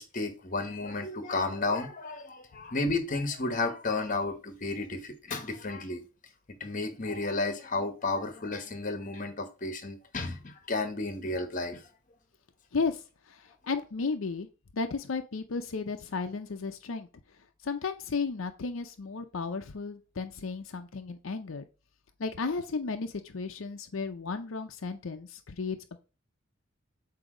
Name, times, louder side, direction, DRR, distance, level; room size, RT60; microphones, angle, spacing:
voice 1, 0.0-6.0 6.6-11.8, left 3 dB, 40° left, 1.1 m, -32 dB
voice 2, 12.7-13.0 13.3-14.5 14.7-17.1 17.6-21.6 22.2-25.8, left 4 dB, 85° left, 0.6 m, -34 dB
7.9 x 2.8 x 4.9 m
head